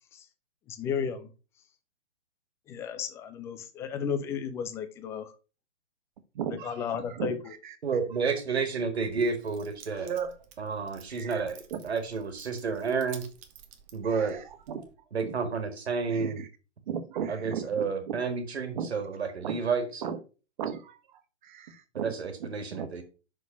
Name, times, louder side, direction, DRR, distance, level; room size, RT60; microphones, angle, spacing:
voice 1, 0.7-1.3 2.7-5.3 6.5-7.5, left 7 dB, 10° left, 0.5 m, -34 dB
voice 2, 6.3-7.3 7.6-7.7 8.8-8.9 10.0-10.3 11.1-11.3 11.7-11.8 14.1-14.4 14.7-14.9 16.1-16.3 16.9-17.6 18.1-18.2 18.8-18.9 19.4-19.6 20.0-20.2 20.6-21.0 21.4-22.1 22.7-22.9, right 8 dB, 45° right, 1.5 m, -35 dB
voice 3, 7.8-10.1 10.6-13.3 13.9-14.4 15.1-16.4 17.3-20.0 21.9-23.0, right 5 dB, 65° right, 1.8 m, -30 dB
Keys jangling, 8.9-14.9, right 9 dB, 20° right, 1.0 m, -53 dB
6.1 x 5.2 x 6.3 m
figure-of-eight pair, 125°, 34 cm